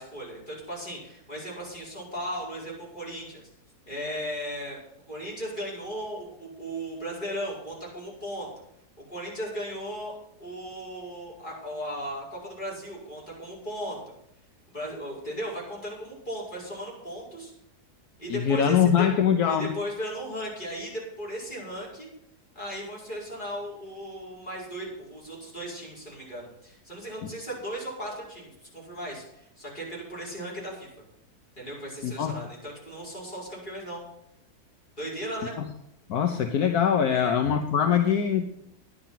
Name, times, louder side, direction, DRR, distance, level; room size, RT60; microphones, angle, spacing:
voice 1, 0.0-3.5 3.9-4.8 5.1-8.5 9.1-10.1 10.4-14.0 14.7-17.5 18.2-19.1 19.4-22.1 22.5-30.9 31.6-34.0 35.0-35.6 37.1-37.3, equal, 30° left, -5 dB, 5.6 m, -36 dB
voice 2, 18.3-19.8 27.2-27.3 32.0-32.4 35.6-35.7 36.1-38.5, left 8 dB, 75° left, 6 dB, 1.4 m, -23 dB
11.0 x 10.5 x 5.9 m, 0.78 s
omnidirectional pair, 1.7 m